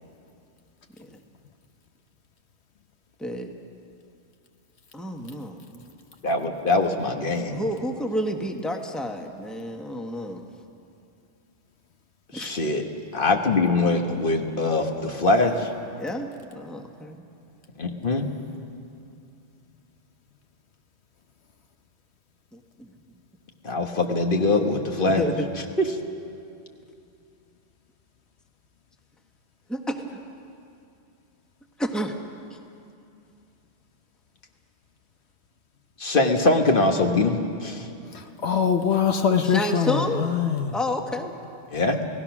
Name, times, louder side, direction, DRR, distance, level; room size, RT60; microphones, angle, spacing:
voice 1, 3.2-3.5 4.9-5.9 7.5-10.4 12.3-12.5 15.9-16.3 16.5-17.2 22.5-22.9 25.0-25.5 29.7-30.2 31.8-32.2 39.4-40.2 40.7-41.3, equal, ahead, 3 dB, 1.2 m, -30 dB
voice 2, 6.2-7.7 12.3-12.8 13.1-15.7 17.8-18.3 23.6-25.2 25.8-25.9 36.0-37.9 41.7-42.0, left 2 dB, 50° left, 4 dB, 1.5 m, -23 dB
voice 3, 38.4-40.7, left 7 dB, 70° left, 5 dB, 1.1 m, -23 dB
29.0 x 17.5 x 6.1 m, 2.7 s
omnidirectional pair, 1.2 m